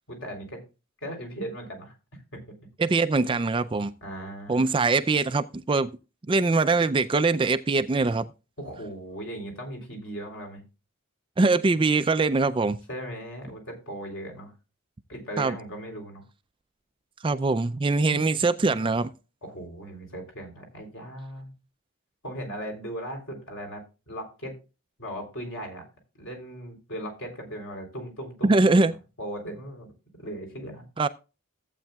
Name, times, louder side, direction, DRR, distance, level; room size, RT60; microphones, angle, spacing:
voice 1, 0.1-0.6 1.0-1.9 2.3-2.4 4.0-5.0 8.6-10.6 12.9-14.5 15.1-16.2 18.0-18.3 19.4-21.5 22.2-24.5 25.0-25.8 26.2-28.7 29.2-29.9 30.2-30.8, equal, 60° left, 3.5 m, -38 dB
voice 2, 2.8-3.9 4.5-5.9 6.3-8.3 11.4-12.8 15.4-15.6 17.2-19.1 28.4-28.9 31.0-31.1, right 3 dB, 25° right, 0.4 m, -22 dB
14.5 x 8.3 x 2.3 m
head